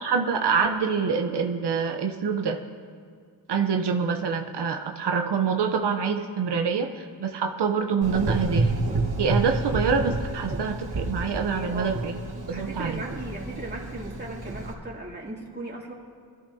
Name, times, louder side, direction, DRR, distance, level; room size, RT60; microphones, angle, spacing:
voice 1, 0.0-2.6 3.5-8.7 9.2-12.1 12.5-13.0, right 6 dB, 85° right, 4 dB, 0.9 m, -26 dB
Gurgling / Engine, 8.0-14.7, right 2 dB, 65° right, 1.9 m, -29 dB
voice 2, 11.5-12.0 12.5-15.9, right 2 dB, 25° right, -3 dB, 2.7 m, -37 dB
22.0 x 13.5 x 2.8 m, 2.2 s
wide cardioid pair, 100°, 40 cm